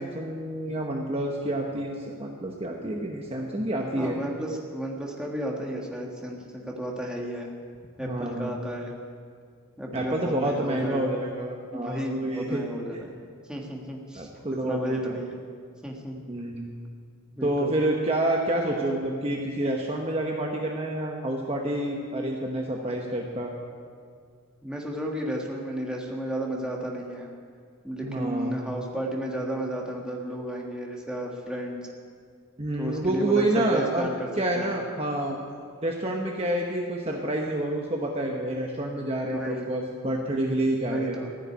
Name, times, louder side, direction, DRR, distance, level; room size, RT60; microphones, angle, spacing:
voice 1, 0.0-4.2 8.0-8.5 9.9-12.6 14.1-15.1 16.3-16.7 17.4-23.5 28.0-28.7 32.6-34.1 34.4-35.4 35.8-41.2, right 1 dB, 25° right, 0 dB, 1.0 m, -28 dB
voice 2, 4.0-7.5 8.0-8.9 9.8-11.1 11.7-13.2 13.5-15.4 15.8-16.2 17.3-17.7 24.6-27.3 27.8-31.9 32.8-34.3 34.6-34.8 39.3-39.7 40.8-41.3, right 1 dB, 5° right, -1 dB, 1.5 m, -33 dB
15.0 x 6.6 x 9.8 m, 2.1 s
head